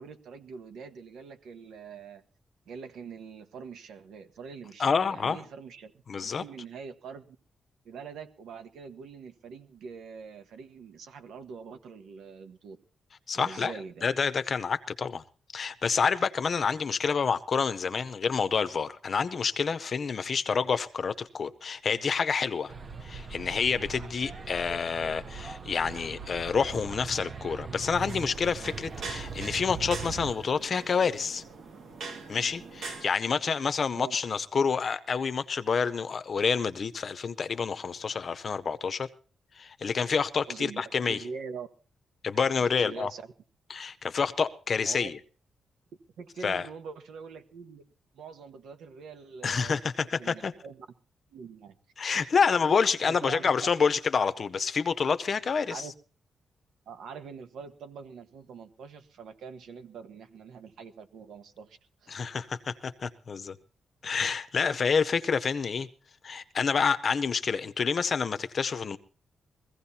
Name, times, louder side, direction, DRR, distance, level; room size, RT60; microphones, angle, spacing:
voice 1, 0.0-2.2 2.6-5.9 6.2-7.4 7.8-12.8 13.3-14.1 33.9-34.2 40.5-41.7 42.6-43.3 44.8-45.1 46.2-47.8 48.1-50.9 51.3-51.7 52.2-52.3 53.1-53.7 55.7-55.9 56.9-62.1, right 5 dB, 85° right, 1.4 m, -44 dB
voice 2, 4.8-5.4 6.1-6.4 13.3-13.7 14.0-15.2 15.5-22.7 23.0-31.4 32.3-39.1 39.6-41.2 42.2-43.1 43.7-45.2 46.4-46.7 49.4-50.5 52.0-55.8 62.1-63.6 64.0-65.9 66.2-69.0, left 5 dB, 35° left, 0.7 m, -28 dB
sound 1, 22.7-30.3, right 5 dB, 30° right, 0.8 m, -40 dB
sound 2, 27.9-33.1, right 3 dB, 65° right, 2.3 m, -43 dB
22.5 x 15.5 x 2.8 m
wide cardioid pair, 170°, 0 cm